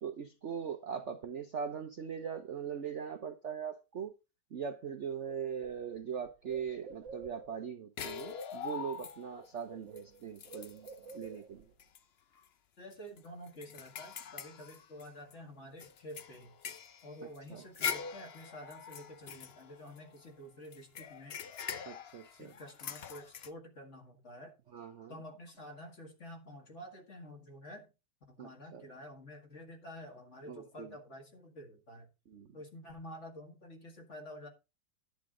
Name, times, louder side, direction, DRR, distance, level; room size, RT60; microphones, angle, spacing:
voice 1, 0.0-4.1 4.5-10.9 11.1-11.7 17.2-17.7 21.8-22.6 24.7-25.2 28.4-28.9 30.4-31.0 32.3-32.6, right 7 dB, 50° right, 0.9 m, -41 dB
Bird, 4.8-4.9 5.2-7.7 8.8-9.0 9.3-11.7, right 4 dB, 75° right, 1.6 m, -51 dB
sound 1, 8.0-9.5 10.0-10.1 10.4-11.2 11.8-12.0 12.4-12.5 12.9-15.3 15.8-20.3 20.7-23.5, left 7 dB, 75° left, 0.5 m, -43 dB
voice 2, 12.8-16.6 17.0-21.4 22.2-24.5 25.1-27.9 28.3-32.1 32.5-34.5, left 1 dB, 35° left, 2.2 m, -49 dB
10.5 x 8.7 x 3.8 m
omnidirectional pair, 2.1 m